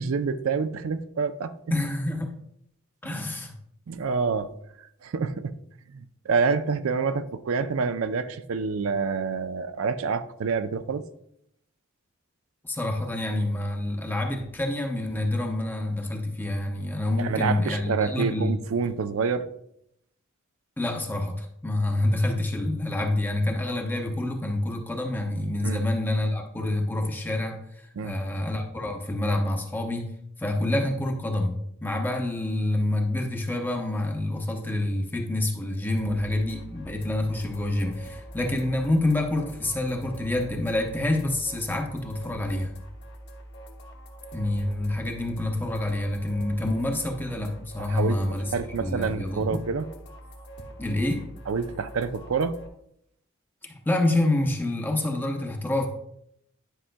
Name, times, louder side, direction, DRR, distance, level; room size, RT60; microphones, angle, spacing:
voice 1, 0.0-1.5 3.9-4.5 5.0-5.6 5.9-11.0 17.2-19.5 25.6-25.8 28.0-28.2 47.8-48.2 48.5-49.9 51.5-52.6, right 5 dB, 75° right, 0.4 m, -27 dB
voice 2, 1.7-2.3 3.0-3.5 12.6-18.5 20.8-30.1 30.4-42.7 44.3-48.5 48.8-49.6 50.8-51.3 53.6-55.9, left 1 dB, 10° left, 0.6 m, -27 dB
sound 1, 36.0-52.7, right 1 dB, 55° left, 1.1 m, -44 dB
10.0 x 5.5 x 2.2 m
head